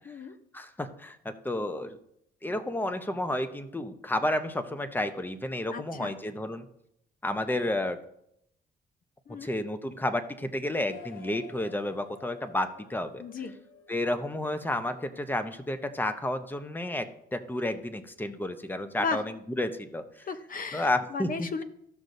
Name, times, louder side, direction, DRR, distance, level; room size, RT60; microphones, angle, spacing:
voice 1, 0.5-2.0 2.4-6.6 7.2-8.0 9.4-13.2 13.9-19.2 19.6-20.0 20.7-21.5, left 1 dB, 10° left, 9 dB, 0.8 m, -31 dB
voice 2, 5.7-6.1 9.3-9.5 13.2-13.6 19.0-19.2 20.3-21.6, left 5 dB, 45° left, 10 dB, 0.8 m, -35 dB
sound 1, 10.8-15.7, left 7 dB, 85° left, 1.5 m, -52 dB
15.0 x 6.3 x 2.7 m, 0.76 s
cardioid pair, 90°, 20 cm